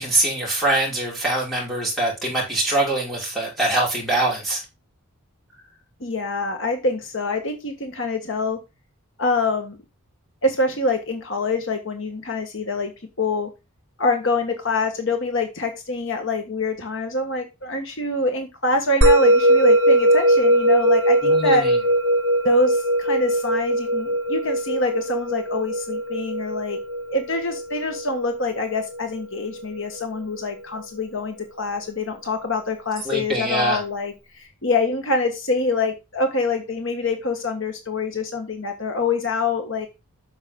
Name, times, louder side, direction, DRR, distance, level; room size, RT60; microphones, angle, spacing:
voice 1, 0.0-4.6 21.2-21.8 33.0-33.8, right 2 dB, ahead, -4 dB, 5.6 m, -23 dB
voice 2, 6.0-8.6 9.2-9.8 10.4-12.9 13.2-13.5 14.0-21.7 22.4-26.8 27.1-39.9, left 3 dB, 55° left, 5 dB, 1.5 m, -25 dB
Musical instrument, 19.0-29.6, right 1 dB, 55° right, 2.3 m, -20 dB
9.0 x 6.8 x 3.8 m, 0.25 s
head